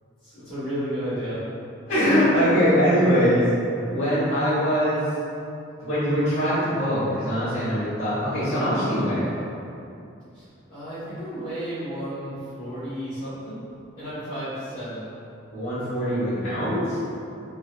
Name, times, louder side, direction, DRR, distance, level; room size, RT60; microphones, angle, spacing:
voice 1, 0.2-1.4 10.3-13.6 14.0-15.1, equal, 45° left, -16 dB, 1.1 m, -33 dB
voice 2, 1.9-3.4 3.9-5.0 5.8-9.3 15.5-17.0, equal, 65° left, -17 dB, 1.4 m, -22 dB
3.7 x 2.7 x 2.3 m, 2.6 s
head